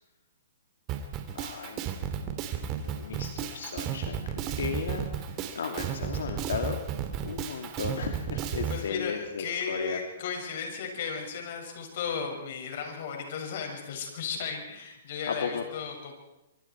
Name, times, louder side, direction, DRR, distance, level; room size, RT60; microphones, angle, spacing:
Drum kit, 0.9-8.8, right 8 dB, 30° right, 2.8 m, -33 dB
voice 1, 1.3-1.8 2.8-6.8 7.2-10.0 15.3-15.6, left 6 dB, 75° left, 4 dB, 2.7 m, -35 dB
voice 2, 8.7-16.1, left 6 dB, 60° left, 2 dB, 7.0 m, -35 dB
26.5 x 24.5 x 4.8 m, 0.94 s
hypercardioid pair, 135°, 0 cm